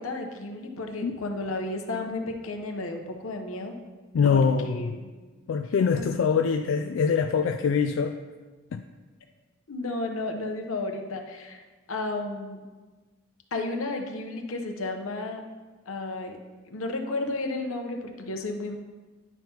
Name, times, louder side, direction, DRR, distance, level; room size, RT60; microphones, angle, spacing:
voice 1, 0.0-3.8 4.3-5.1 5.9-6.0 9.7-11.6 11.9-12.6 13.5-15.4 15.9-16.4 16.7-18.8, left 2 dB, 85° left, 4 dB, 0.9 m, -33 dB
voice 2, 4.1-5.0 5.5-8.2 8.7-8.8, left 6 dB, 70° left, 7 dB, 0.3 m, -24 dB
10.5 x 5.6 x 2.9 m, 1.3 s
head